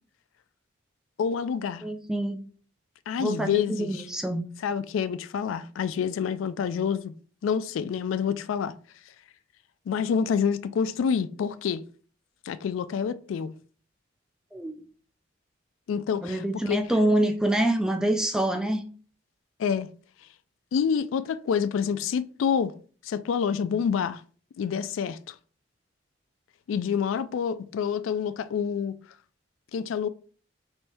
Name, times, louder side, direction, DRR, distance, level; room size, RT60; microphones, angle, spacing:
voice 1, 1.2-1.8 3.1-4.0 4.6-7.1 7.4-8.7 9.9-11.8 12.5-13.5 15.9-16.8 19.6-19.9 20.7-22.7 23.0-24.2 24.6-25.4 26.7-28.9 29.7-30.1, left 7 dB, 80° left, 0.3 m, -27 dB
voice 2, 1.8-2.5 3.2-4.4 14.5-14.7 16.2-18.8, right 1 dB, 5° right, 0.3 m, -26 dB
3.4 x 2.6 x 4.2 m
head